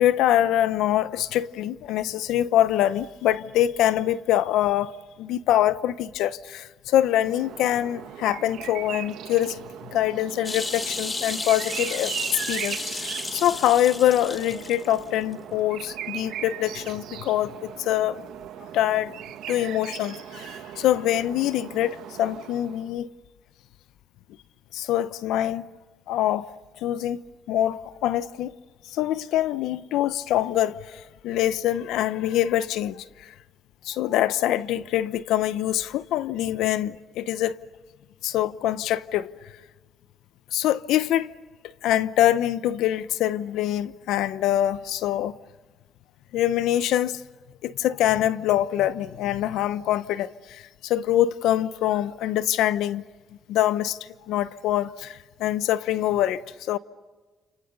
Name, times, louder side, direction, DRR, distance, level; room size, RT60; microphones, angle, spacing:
voice 1, 0.0-4.9 5.2-9.6 9.9-12.1 12.5-18.2 18.7-19.1 19.5-23.1 24.7-25.7 26.1-26.5 26.8-27.2 27.5-28.5 28.9-33.0 33.8-37.6 38.2-39.3 40.5-41.3 41.8-45.3 46.3-47.2 47.6-53.0 53.5-54.0 54.3-56.8, left 12 dB, 90° left, 0.8 m, -24 dB
sound 1, 7.0-22.9, right 11 dB, 85° right, 1.7 m, -38 dB
sound 2, 10.4-15.0 15.3-15.4, left 3 dB, 30° left, 2.3 m, -33 dB
29.5 x 29.0 x 6.8 m
cardioid pair, 90°, 0 cm